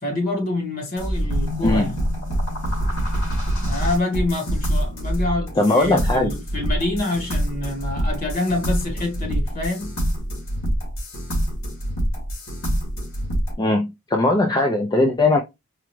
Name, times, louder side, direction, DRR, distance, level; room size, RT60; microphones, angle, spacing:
voice 1, 0.0-2.0 3.2-3.3 3.6-9.9, left 2 dB, 40° left, 1.4 m, -26 dB
sound 1, 1.0-13.5, equal, 85° left, 2.1 m, -25 dB
voice 2, 5.6-6.4 13.6-15.4, left 2 dB, 20° left, 0.3 m, -19 dB
4.9 x 2.3 x 3.0 m
head